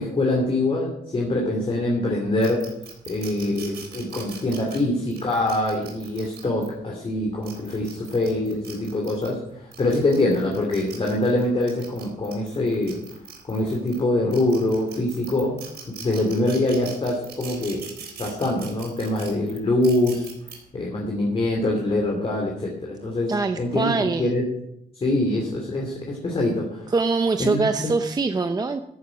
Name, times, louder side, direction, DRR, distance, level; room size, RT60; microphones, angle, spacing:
voice 1, 0.0-2.7 3.1-13.0 13.5-15.6 16.0-17.9 18.2-20.3 20.7-24.4 24.9-26.9 27.4-27.9, left 1 dB, 35° left, -1 dB, 2.7 m, -24 dB
sound 1, 2.4-6.7 7.3-9.3 9.7-14.0 14.3-20.5, right 7 dB, 75° right, 3.8 m, -41 dB
voice 2, 23.3-24.3 26.9-28.8, right 3 dB, 25° right, 7 dB, 0.6 m, -23 dB
13.5 x 10.0 x 5.1 m, 0.80 s
cardioid pair, 130°, 17 cm